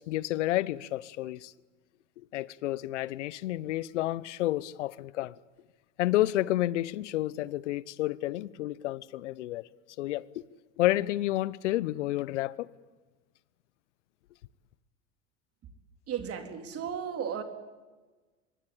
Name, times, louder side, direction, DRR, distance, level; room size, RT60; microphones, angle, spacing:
voice 1, 0.0-1.5 2.3-5.3 6.0-9.6 10.0-10.3 10.8-12.7, left 15 dB, 75° left, 0.9 m, -30 dB
voice 2, 16.1-17.4, right 8 dB, 40° right, 3.7 m, -34 dB
24.5 x 21.5 x 8.8 m
hypercardioid pair, 90°, 36 cm